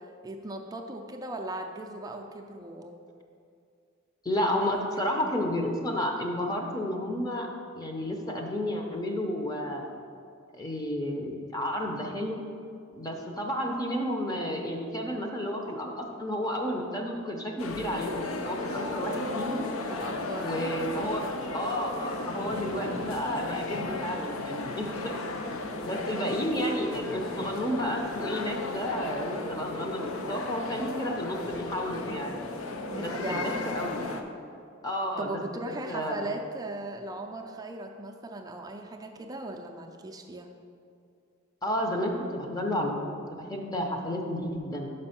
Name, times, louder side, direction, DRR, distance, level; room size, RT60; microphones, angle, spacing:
voice 1, 0.0-3.0 4.7-4.8 19.9-20.9 25.8-26.1 32.9-33.7 35.2-40.5, right 2 dB, 20° right, 3 dB, 0.4 m, -38 dB
voice 2, 4.2-7.5 7.7-10.0 10.5-12.4 12.9-19.7 20.4-21.2 21.5-25.1 25.8-32.4 33.0-34.0 34.8-35.4 35.9-36.3 41.6-44.9, equal, 20° left, 2 dB, 0.7 m, -31 dB
sound 1, 17.6-34.2, left 2 dB, 80° left, 0.6 m, -35 dB
5.8 x 5.3 x 5.7 m, 2.4 s
head